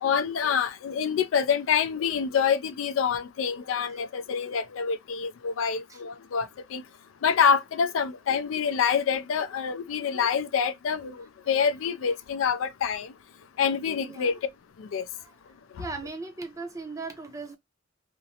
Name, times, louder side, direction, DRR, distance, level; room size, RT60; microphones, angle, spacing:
voice 1, 0.0-6.8 7.2-13.1 13.6-14.4 14.8-15.0 15.8-15.9, left 6 dB, 75° left, 0.4 m, -26 dB
voice 2, 14.0-14.4 15.1-15.3 15.8-17.6, right 3 dB, 15° right, 0.5 m, -38 dB
2.5 x 2.0 x 2.7 m
head